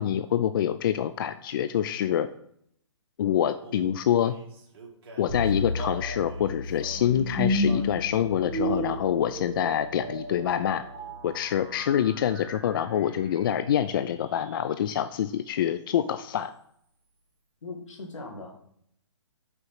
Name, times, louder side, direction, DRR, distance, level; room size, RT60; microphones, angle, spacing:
voice 1, 0.0-2.3 3.2-4.3 5.2-10.8 11.2-16.5, left 10 dB, 45° left, 11 dB, 0.4 m, -26 dB
Male singing, 3.6-8.0 8.7-9.1 9.7-10.0 10.3-11.2, right 3 dB, 50° right, 1.9 m, -45 dB
sound 1, 5.3-14.4, left 1 dB, 20° right, 3.0 m, -33 dB
voice 2, 17.6-18.5, left 3 dB, 75° left, 3 dB, 2.1 m, -39 dB
6.6 x 5.2 x 4.7 m, 0.69 s
hypercardioid pair, 145°, 16 cm